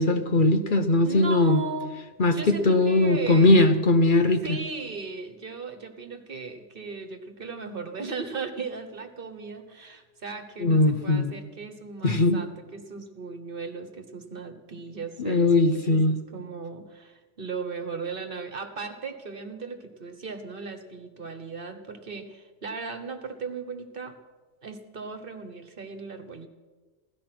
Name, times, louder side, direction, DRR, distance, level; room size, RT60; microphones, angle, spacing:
voice 1, 0.0-1.6 2.2-4.6 10.6-11.3 12.0-12.4 15.2-16.1, left 2 dB, 50° left, 8 dB, 0.9 m, -20 dB
voice 2, 1.0-2.0 2.3-3.6 4.4-16.0 16.3-24.2 24.6-26.5, right 4 dB, 50° right, 8 dB, 1.4 m, -37 dB
16.5 x 13.0 x 6.0 m, 1.3 s
omnidirectional pair, 1.2 m